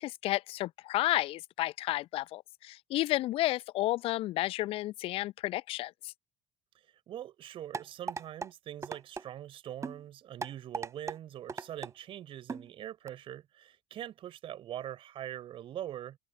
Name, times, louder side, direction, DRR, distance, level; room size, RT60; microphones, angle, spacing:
voice 1, 0.0-6.1, left 16 dB, 50° left, 0.7 m, -32 dB
voice 2, 7.1-16.2, right 11 dB, 45° right, 4.1 m, -43 dB
sound 1, 7.7-8.5 8.8-9.3 9.8-10.0 10.4-11.2 11.5-11.9 12.5-12.7 13.1-13.2, right 4 dB, 25° right, 3.4 m, -37 dB
figure-of-eight pair, 55°, 12 cm